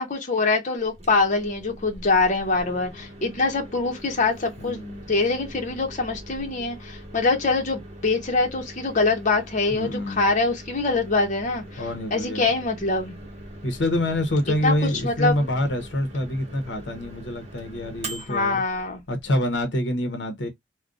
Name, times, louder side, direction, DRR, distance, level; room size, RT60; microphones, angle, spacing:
voice 1, 0.0-4.8 5.0-11.8 12.1-13.1 14.6-15.5 18.3-19.0, left 3 dB, 45° left, 0.9 m, -24 dB
Microwave oven, 0.8-19.6, right 1 dB, 35° right, 1.1 m, -42 dB
voice 2, 4.6-5.0 9.7-10.3 11.8-12.5 13.6-18.6 19.1-20.5, left 1 dB, 75° left, 0.8 m, -26 dB
3.7 x 2.3 x 2.4 m
head